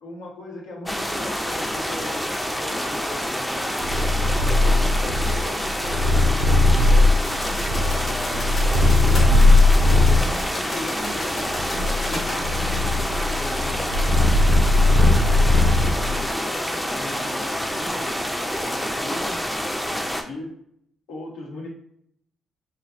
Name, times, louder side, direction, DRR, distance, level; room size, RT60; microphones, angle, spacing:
voice 1, 0.0-3.9 4.3-6.0 6.9-7.1 7.8-8.5 9.0-9.5 9.8-14.0 14.7-19.4 20.3-20.5 21.1-21.7, left 1 dB, 85° left, -3 dB, 0.8 m, -38 dB
sound 1, 0.9-20.2, equal, 10° left, 0.4 m, -27 dB
Purr, 3.8-10.3 11.0-16.2, left 2 dB, 80° right, 0.4 m, -18 dB
sound 2, 7.2-12.4, left 1 dB, 60° left, 0.9 m, -37 dB
2.5 x 2.2 x 2.5 m, 0.70 s
hypercardioid pair, 45°, 0 cm